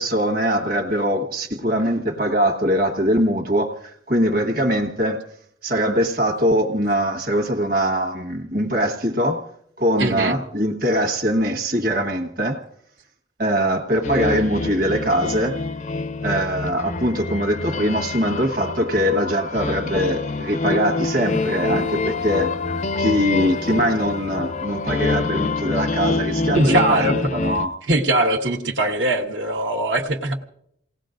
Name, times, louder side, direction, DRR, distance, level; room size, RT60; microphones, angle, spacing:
voice 1, 0.0-3.7 4.1-5.2 5.6-9.4 9.8-12.6 13.4-15.6 16.2-22.5 23.0-27.7, equal, 50° right, 1.4 m, -22 dB
voice 2, 10.0-10.4 26.5-27.1 27.9-30.4, right 1 dB, 75° right, 1.4 m, -21 dB
sound 1, 14.0-27.6, left 3 dB, 40° left, 0.5 m, -26 dB
29.0 x 18.5 x 2.6 m
head